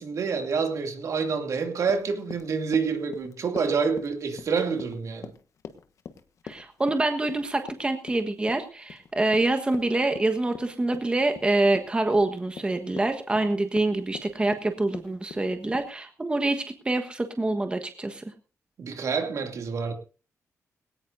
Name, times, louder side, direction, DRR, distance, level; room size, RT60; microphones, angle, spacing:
voice 1, 0.0-5.3 18.8-19.9, right 5 dB, 60° right, 2.6 m, -27 dB
Run, 1.8-15.9, left 7 dB, 60° left, 1.3 m, -44 dB
voice 2, 6.4-18.2, right 2 dB, 15° right, 1.3 m, -26 dB
19.0 x 17.5 x 2.7 m
cardioid pair, 105°, 6 cm